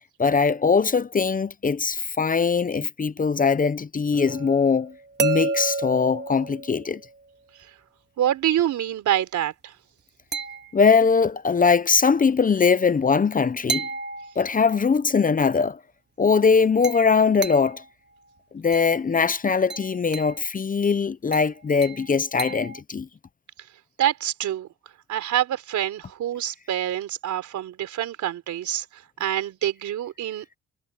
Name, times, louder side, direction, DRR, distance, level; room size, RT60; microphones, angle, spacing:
voice 1, 0.2-4.9 5.2-7.0 10.7-13.9 14.4-15.8 16.2-17.8 18.5-23.1, left 5 dB, 25° left, 0.8 m, -21 dB
sound 1, 4.2-7.2 10.3-11.1 13.7-14.9 16.8-17.9 18.7-19.0 19.7-20.4 21.3-22.8, right 4 dB, 35° right, 2.3 m, -32 dB
voice 2, 8.2-9.7 24.0-24.7 25.1-30.5, right 11 dB, 75° right, 3.8 m, -26 dB
cardioid pair, 90°, 30 cm